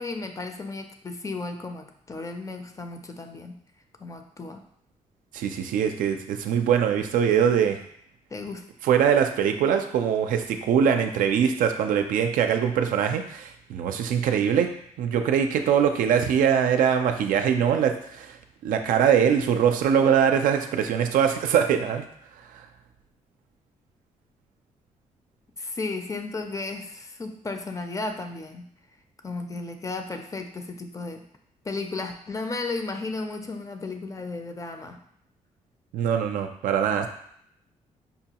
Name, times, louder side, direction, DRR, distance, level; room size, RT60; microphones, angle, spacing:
voice 1, 0.0-3.6 4.0-4.6 8.3-8.7 25.6-28.7 29.2-31.2 31.6-35.0, left 3 dB, 25° left, 6 dB, 0.4 m, -34 dB
voice 2, 5.3-7.8 8.8-14.7 15.0-18.4 18.6-22.0 22.5-22.6 35.9-37.1, right 8 dB, 85° right, 6 dB, 0.4 m, -22 dB
5.3 x 2.3 x 2.8 m, 0.68 s
cardioid pair, 90°, 14 cm